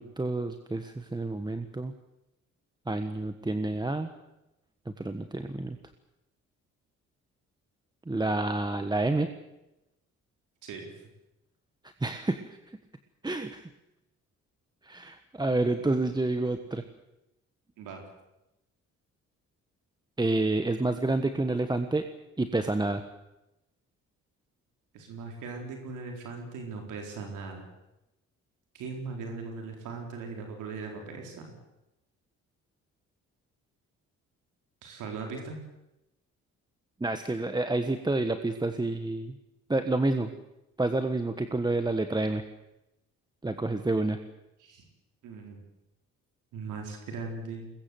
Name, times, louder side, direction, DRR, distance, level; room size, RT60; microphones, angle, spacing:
voice 1, 0.0-1.9 2.9-4.1 4.9-5.8 8.1-9.3 12.0-12.5 13.2-13.7 14.8-16.8 20.2-22.1 22.4-23.0 37.0-39.4 39.7-40.3 40.8-42.4 43.4-44.2, right 2 dB, 15° right, 8 dB, 1.4 m, -29 dB
voice 2, 24.9-27.7 28.7-31.5 34.8-35.6 44.6-44.9 45.2-45.6 46.5-47.7, right 4 dB, 85° right, 2 dB, 4.1 m, -39 dB
22.0 x 21.0 x 7.9 m, 0.93 s
cardioid pair, 90°, 30 cm